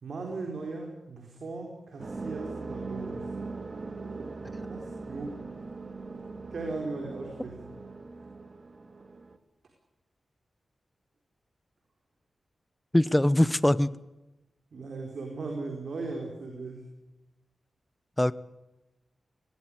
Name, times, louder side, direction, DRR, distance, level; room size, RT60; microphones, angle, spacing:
voice 1, 0.0-3.2 4.0-5.3 6.5-7.6 14.7-16.8, right 3 dB, 75° right, 2 dB, 4.2 m, -38 dB
sound 1, 2.0-9.4, right 3 dB, 45° right, 1.9 m, -40 dB
voice 2, 12.9-13.9 18.2-18.3, left 1 dB, 10° left, 18 dB, 0.9 m, -22 dB
19.5 x 18.0 x 9.9 m, 0.99 s
cardioid pair, 65°, 0 cm